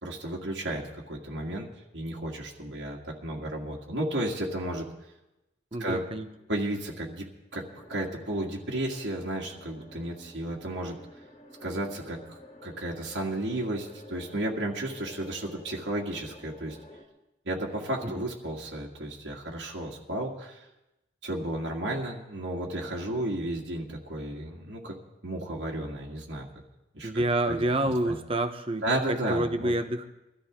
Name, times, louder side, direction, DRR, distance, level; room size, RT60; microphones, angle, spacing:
voice 1, 0.0-1.7 1.9-4.9 5.8-6.0 6.5-7.2 7.5-7.6 7.9-10.9 11.6-16.8 17.5-20.6 21.2-24.9 25.2-26.5 26.9-27.6 28.1-28.2 28.8-29.7, right 1 dB, 85° right, -3 dB, 2.2 m, -33 dB
voice 2, 5.7-6.3 18.0-18.2 27.0-28.8 29.1-30.1, right 1 dB, 30° right, 8 dB, 1.0 m, -28 dB
sound 1, 7.6-17.0, left 1 dB, 40° left, 2.2 m, -50 dB
22.5 x 13.5 x 3.8 m, 0.97 s
head